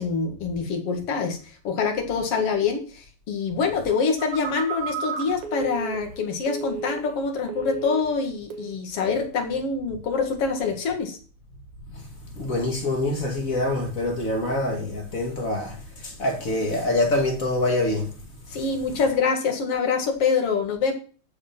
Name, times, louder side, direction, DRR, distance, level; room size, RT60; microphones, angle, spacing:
voice 1, 0.0-11.2 18.5-20.9, left 5 dB, 55° left, 2.6 m, -25 dB
Telephone, 4.2-7.2 7.5-8.2 8.5-8.8, right 5 dB, 90° right, 2.9 m, -33 dB
voice 2, 12.4-15.8 16.0-18.1, left 2 dB, 30° left, 2.0 m, -25 dB
14.5 x 4.8 x 6.0 m
omnidirectional pair, 3.4 m